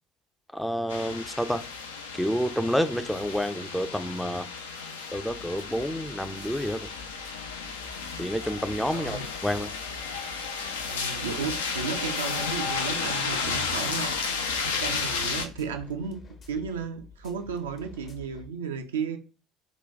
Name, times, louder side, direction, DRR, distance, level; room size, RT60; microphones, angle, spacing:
voice 1, 0.5-1.6 2.1-4.5 5.1-6.9 8.2-9.7, equal, 5° left, 0.4 m, -29 dB
sound 1, 0.9-15.5, left 5 dB, 75° left, 0.4 m, -33 dB
sound 2, 5.2-18.5, left 3 dB, 40° left, 0.8 m, -49 dB
voice 2, 8.9-9.3 10.9-14.3 14.6-19.2, right 6 dB, 75° right, 0.4 m, -34 dB
3.9 x 2.2 x 3.3 m
figure-of-eight pair, 60°, 0 cm